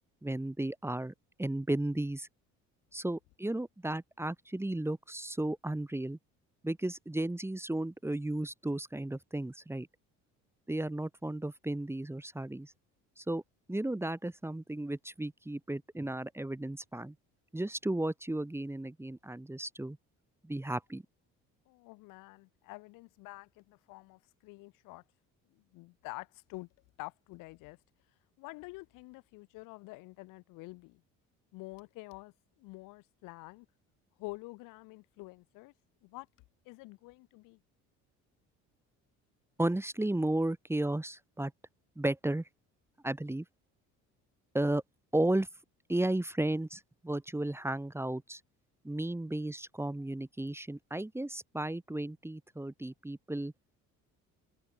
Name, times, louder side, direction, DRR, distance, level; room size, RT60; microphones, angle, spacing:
voice 1, 0.2-1.1 1.4-2.3 2.9-6.2 6.6-9.9 10.7-12.7 13.2-13.4 13.7-17.1 17.5-20.0 20.4-21.0 39.6-41.5 42.0-42.4 43.0-43.4 44.5-44.8 45.1-45.5 45.9-48.4 48.8-53.5, right 1 dB, 10° right, 2.4 m, -34 dB
voice 2, 21.7-25.0 25.5-26.7 27.0-27.8 28.4-31.0 31.5-33.7 34.2-35.7 36.0-36.3 36.7-37.6, left 23 dB, 85° left, 7.1 m, -48 dB
cardioid pair, 100°, 31 cm